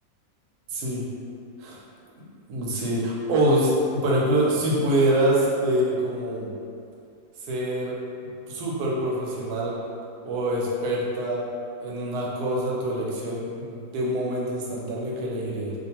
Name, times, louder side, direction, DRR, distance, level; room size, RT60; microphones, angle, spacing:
voice 1, 0.7-1.1 1.6-1.8 2.2-6.5 7.5-8.0 8.5-9.7 10.2-11.4 11.8-15.7, right 1 dB, 90° right, -3 dB, 1.1 m, -25 dB
2.5 x 2.4 x 2.8 m, 2.5 s
omnidirectional pair, 1.6 m